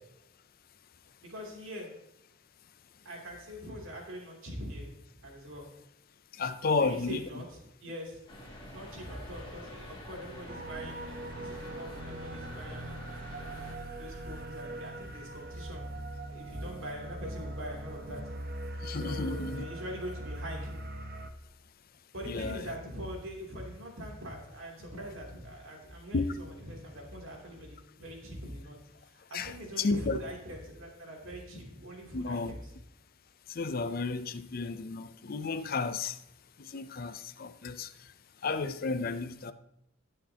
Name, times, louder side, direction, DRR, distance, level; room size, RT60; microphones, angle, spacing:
voice 1, 1.2-1.9 3.0-4.9 5.2-5.7 6.6-7.4 7.8-8.2 8.6-12.9 13.8-15.9 16.3-18.2 18.9-20.7 22.1-28.8 29.1-32.7, equal, 80° right, 3.0 m, -43 dB
voice 2, 6.3-7.4 18.8-19.7 22.2-22.8 26.1-26.4 29.3-30.2 32.1-32.5 33.5-36.2 36.6-38.1 38.4-39.5, left 4 dB, 45° left, 0.5 m, -33 dB
sound 1, 8.3-13.7, left 1 dB, 25° left, 2.2 m, -47 dB
sound 2, 10.5-21.3, right 1 dB, 50° right, 0.9 m, -41 dB
19.0 x 6.4 x 2.9 m
head